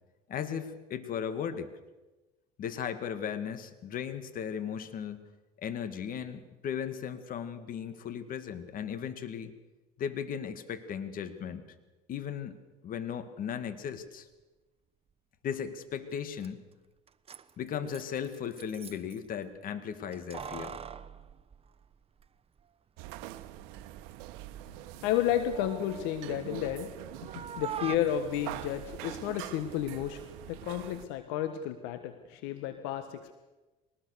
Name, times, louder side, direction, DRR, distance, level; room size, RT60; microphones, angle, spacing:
voice 1, 0.3-1.7 2.6-5.3 5.6-9.5 10.0-11.6 12.1-14.3 15.4-16.6 17.6-20.8, left 8 dB, 55° left, 11 dB, 2.2 m, -36 dB
Keys jangling, 16.1-16.2 16.4-16.5 17.1-19.2 20.1-22.3 22.6-22.7 23.5-24.1 24.5-26.9 27.2-28.0, right 7 dB, 35° right, 1.1 m, -43 dB
sound 1, 23.0-31.1, right 15 dB, 75° right, 1.2 m, -44 dB
voice 2, 25.0-33.3, left 11 dB, 75° left, 10 dB, 1.4 m, -32 dB
22.5 x 19.5 x 6.8 m, 1.1 s
supercardioid pair, 80°, 18 cm